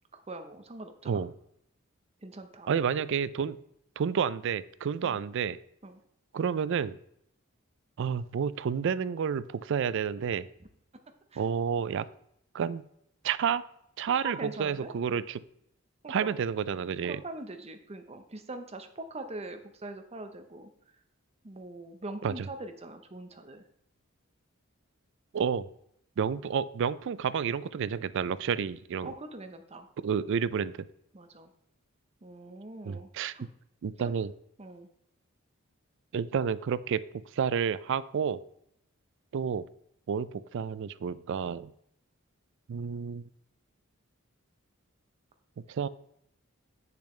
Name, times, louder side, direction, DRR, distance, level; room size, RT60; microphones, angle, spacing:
voice 1, 0.1-1.2 2.2-2.7 5.8-6.0 11.3-11.4 14.2-14.9 16.0-16.3 17.0-20.7 21.4-23.6 29.0-29.9 31.1-31.5 32.2-33.5 34.0-34.1 34.6-34.9, right 2 dB, 30° right, 7 dB, 0.8 m, -42 dB
voice 2, 2.7-3.6 4.0-5.6 6.3-7.0 8.0-10.5 11.4-12.1 12.5-12.8 13.2-13.6 14.0-15.4 16.1-17.2 22.2-22.5 25.3-25.7 26.2-29.1 30.0-30.7 32.8-33.3 33.8-34.3 36.1-37.0 37.3-38.4 39.3-39.7 40.1-41.7 42.7-43.3 45.7-45.9, right 7 dB, 60° right, 17 dB, 0.4 m, -30 dB
8.1 x 6.8 x 3.2 m, 0.73 s
head